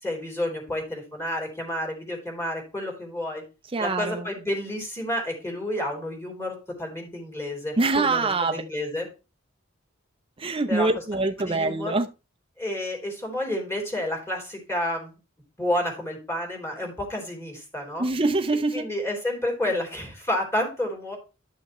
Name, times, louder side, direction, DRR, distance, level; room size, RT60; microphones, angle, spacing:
voice 1, 0.0-3.4 3.8-9.1 10.7-10.9 11.4-12.0 12.6-15.1 15.6-18.1 18.7-21.2, left 1 dB, 15° left, 3.3 m, -30 dB
voice 2, 3.7-4.2 7.8-8.6 10.4-12.1 18.0-18.9, right 3 dB, 25° right, 0.7 m, -24 dB
12.0 x 6.3 x 3.1 m
head